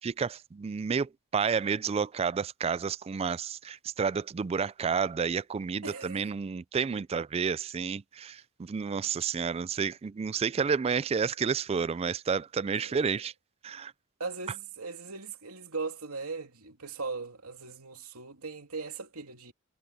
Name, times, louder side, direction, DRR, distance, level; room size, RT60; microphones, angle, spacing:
voice 1, 0.0-13.3 13.6-13.9, right 6 dB, 25° right, 0.3 m, -30 dB
voice 2, 5.8-6.3 12.8-13.2 14.2-19.5, right 4 dB, 80° right, 3.0 m, -39 dB
head